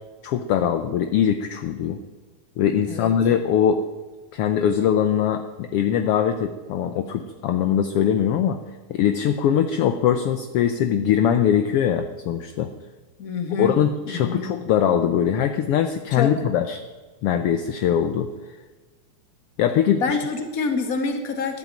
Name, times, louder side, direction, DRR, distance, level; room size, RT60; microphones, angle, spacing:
voice 1, 0.2-2.0 2.6-3.8 4.3-8.6 8.9-12.7 13.6-16.8 17.2-18.3 19.6-20.2, left 9 dB, 70° left, 8 dB, 1.4 m, -21 dB
voice 2, 13.2-14.5 16.1-16.4 20.0-21.6, left 4 dB, 35° left, 6 dB, 1.8 m, -27 dB
14.0 x 11.5 x 8.9 m, 1.3 s
omnidirectional pair, 3.5 m